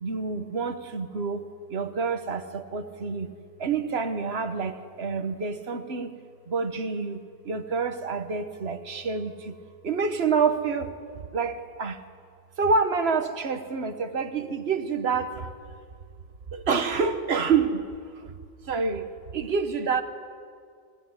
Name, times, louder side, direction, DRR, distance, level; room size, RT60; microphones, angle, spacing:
voice 1, 0.0-1.4 1.7-3.3 3.6-6.1 6.5-7.2 7.5-9.5 9.8-10.9 11.3-11.9 12.6-15.3 16.5-17.8 18.7-19.0 19.3-20.0, right 5 dB, 75° right, 7 dB, 1.5 m, -27 dB
25.5 x 16.0 x 9.7 m, 2.1 s
omnidirectional pair, 1.1 m